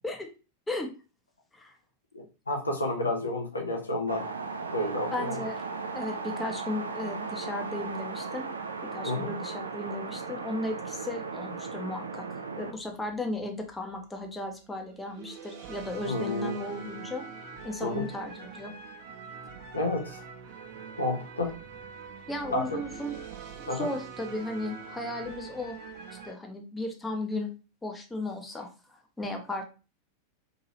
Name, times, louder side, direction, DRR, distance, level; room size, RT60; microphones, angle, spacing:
voice 1, 2.1-4.3 4.7-5.4 9.0-9.3 16.0-16.5 17.8-18.1 19.7-20.2 21.0-21.6 22.5-22.8 23.7-23.9, left 1 dB, 80° left, 3 dB, 0.6 m, -30 dB
sound 1, 4.1-12.7, right 4 dB, 75° right, 0.3 m, -37 dB
voice 2, 5.1-5.6 5.9-8.5 8.8-17.3 17.6-18.7 22.3-23.1 23.6-25.8 26.2-27.5 27.8-29.6, left 2 dB, 10° left, 3 dB, 0.6 m, -35 dB
sound 2, 12.8-14.0 14.8-26.3, right 5 dB, 50° right, 0.8 m, -44 dB
2.8 x 2.8 x 2.7 m, 0.32 s
figure-of-eight pair, 90°, 0 cm